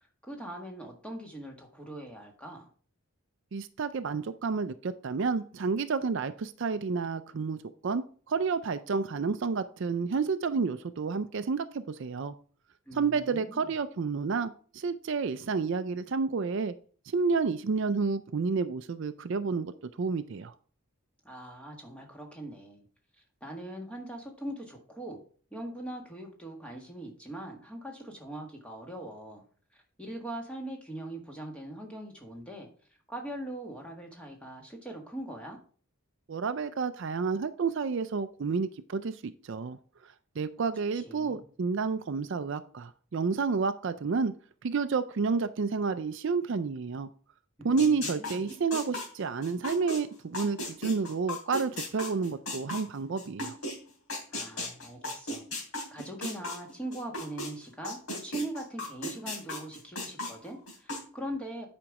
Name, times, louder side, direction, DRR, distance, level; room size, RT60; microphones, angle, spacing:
voice 1, 0.3-2.7 12.9-13.7 21.2-22.8 23.4-25.2 25.5-29.4 29.7-32.7 33.1-35.6 40.9-41.4 47.6-48.4 54.3-55.4 55.9-61.7, right 1 dB, 5° left, 1 dB, 1.6 m, -41 dB
voice 2, 3.5-12.3 12.9-16.7 17.1-19.7 20.0-20.5 36.3-39.8 40.4-44.3 44.6-47.1 47.6-53.6, right 5 dB, 55° right, 12 dB, 0.4 m, -30 dB
sound 1, 47.8-53.7 54.1-57.5 57.8-61.0, left 1 dB, 75° left, 3.1 m, -36 dB
8.8 x 5.2 x 4.7 m, 0.43 s
head